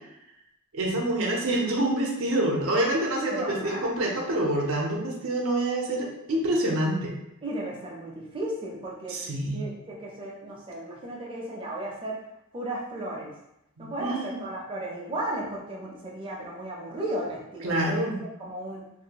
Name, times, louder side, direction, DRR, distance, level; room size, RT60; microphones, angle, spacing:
voice 1, 0.7-7.1 9.1-9.6 13.8-14.4 17.6-18.2, right 1 dB, 75° right, -1 dB, 0.6 m, -27 dB
voice 2, 3.3-3.9 7.4-9.2 9.5-12.2 12.5-13.3 13.8-18.1 18.4-18.8, right 1 dB, 25° right, -4 dB, 0.5 m, -35 dB
2.5 x 2.2 x 2.8 m, 0.83 s
head